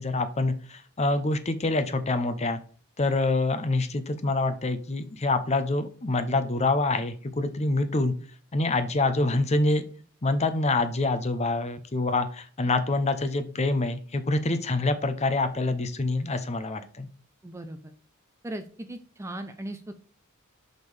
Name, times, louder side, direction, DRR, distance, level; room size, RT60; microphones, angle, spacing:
voice 1, 0.0-2.6 3.0-8.1 8.5-9.8 10.2-17.1, left 2 dB, 30° left, 10 dB, 0.7 m, -26 dB
voice 2, 17.4-17.9 18.4-19.9, right 1 dB, 10° right, 8 dB, 0.4 m, -38 dB
6.1 x 5.3 x 3.3 m, 0.41 s
head